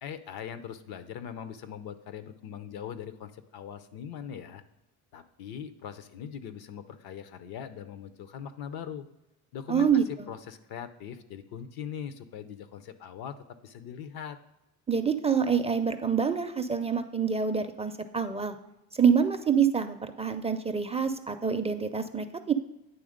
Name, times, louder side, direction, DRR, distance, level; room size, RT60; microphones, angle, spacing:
voice 1, 0.0-4.6 5.1-9.1 9.5-9.9 10.3-13.4 13.6-14.4, left 8 dB, 75° left, 11 dB, 0.7 m, -41 dB
voice 2, 9.7-10.3 14.9-18.6 19.0-22.5, right 6 dB, 15° right, 8 dB, 0.4 m, -26 dB
9.4 x 3.5 x 5.0 m, 0.93 s
cardioid pair, 90°, 38 cm